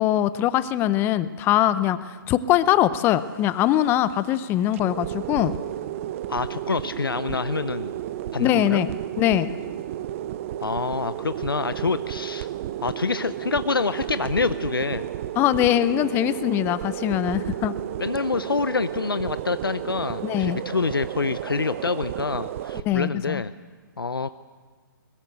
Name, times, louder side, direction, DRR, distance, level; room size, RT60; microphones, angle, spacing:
voice 1, 0.0-5.5 8.4-8.9 9.2-9.5 15.4-17.7 20.2-20.6 22.8-23.4, left 12 dB, 20° left, 15 dB, 0.6 m, -22 dB
sound 1, 3.1-22.8, right 12 dB, 35° right, 0.7 m, -33 dB
voice 2, 6.3-7.9 8.3-8.9 10.6-12.5 12.8-15.1 18.0-23.5 24.0-24.3, left 4 dB, 90° left, 13 dB, 0.7 m, -26 dB
21.0 x 20.5 x 8.0 m, 1.5 s
figure-of-eight pair, 140°, 12 cm